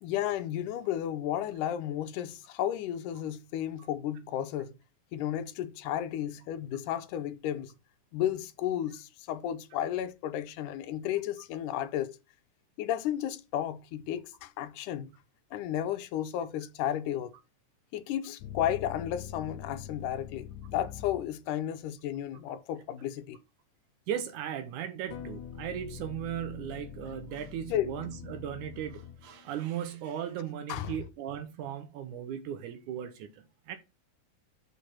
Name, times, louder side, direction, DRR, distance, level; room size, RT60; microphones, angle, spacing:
voice 1, 0.0-4.7 5.1-7.7 8.1-12.2 12.8-15.1 15.5-17.3 17.9-23.4 27.7-27.9 30.7-31.0, left 11 dB, 90° left, 2.2 m, -33 dB
sound 1, 18.4-21.5 25.1-29.7, left 9 dB, 75° left, 2.2 m, -44 dB
voice 2, 24.1-33.8, right 10 dB, 75° right, 2.3 m, -37 dB
6.6 x 5.2 x 5.9 m
omnidirectional pair, 3.7 m